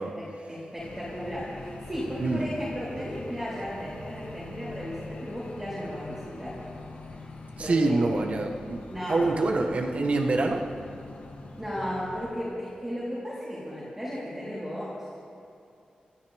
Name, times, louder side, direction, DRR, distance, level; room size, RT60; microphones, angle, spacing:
voice 1, 0.0-6.6 7.6-8.2 8.9-9.4 11.6-15.0, equal, 10° right, -10 dB, 3.8 m, -35 dB
sound 1, 0.8-12.3, left 2 dB, 80° left, 2.6 m, -43 dB
voice 2, 7.6-10.6, right 2 dB, 50° right, 2 dB, 1.4 m, -26 dB
29.0 x 13.0 x 3.6 m, 2.6 s
wide cardioid pair, 130°, 3 cm